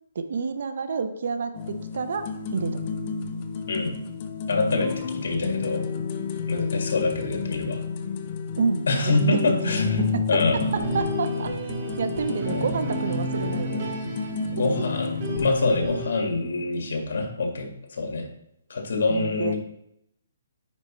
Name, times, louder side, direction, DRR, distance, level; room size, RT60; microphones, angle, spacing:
voice 1, 0.1-2.8 8.6-10.4 10.7-11.5 12.0-13.8 19.1-19.6, right 5 dB, 60° right, 10 dB, 0.6 m, -29 dB
sound 1, 1.5-15.5, left 5 dB, 30° left, 0.5 m, -31 dB
voice 2, 4.5-5.8 6.5-7.8 8.9-10.0 10.3-10.6 12.5-12.7 14.5-18.3 18.7-19.6, left 3 dB, 65° left, 2 dB, 1.8 m, -25 dB
sound 2, 10.6-16.1, equal, 40° right, 1.5 m, -32 dB
9.6 x 4.4 x 3.1 m, 0.77 s
hypercardioid pair, 165°, 0 cm